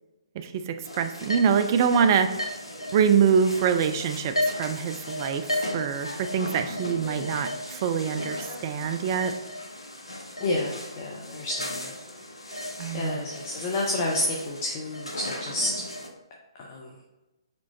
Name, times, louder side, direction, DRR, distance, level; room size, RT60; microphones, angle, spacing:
voice 1, 0.4-2.3 2.9-9.3 12.8-13.2, right 7 dB, 35° right, 9 dB, 0.3 m, -25 dB
sound 1, 0.8-16.1, left 1 dB, 80° left, 0.7 m, -35 dB
voice 2, 10.4-11.9 12.5-12.6 12.9-15.8 16.6-16.9, left 2 dB, 30° left, -1 dB, 0.6 m, -30 dB
4.3 x 4.3 x 2.7 m, 1.0 s
figure-of-eight pair, 130°, 3 cm